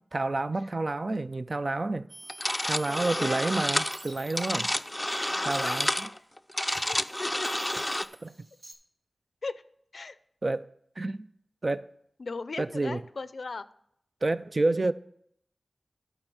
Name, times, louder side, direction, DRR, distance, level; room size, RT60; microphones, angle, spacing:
voice 1, 0.1-2.1 2.6-4.7 5.5-5.9 8.2-8.3 10.4-10.7 11.0-11.3 11.6-11.9 12.6-13.0 14.2-14.9, right 2 dB, 45° right, 0.4 m, -29 dB
sound 1, 2.1-6.2 6.7-8.7, right 1 dB, 85° right, 1.7 m, -49 dB
sound 2, 2.3-8.1, left 1 dB, 10° left, 0.5 m, -30 dB
voice 2, 2.9-3.5 5.3-5.8 6.7-7.5 9.4-9.6 9.9-10.2 12.2-13.7, left 3 dB, 70° left, 0.5 m, -38 dB
11.5 x 4.4 x 6.1 m
wide cardioid pair, 60°, 0 cm